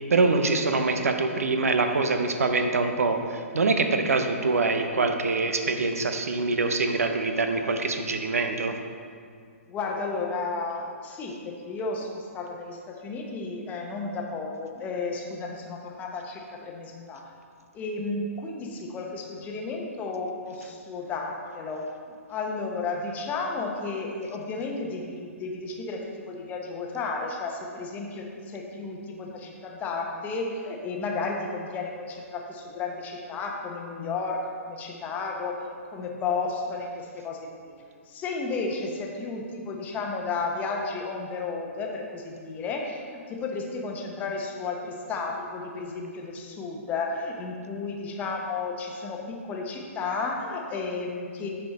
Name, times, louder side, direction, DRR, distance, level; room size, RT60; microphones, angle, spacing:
voice 1, 0.1-8.8, right 3 dB, 80° right, 6 dB, 0.8 m, -24 dB
voice 2, 9.7-17.3 17.7-21.9 22.3-37.8 38.1-51.5, left 3 dB, 20° left, 1 dB, 0.9 m, -33 dB
10.0 x 4.4 x 4.1 m, 2.1 s
hypercardioid pair, 130°, 8 cm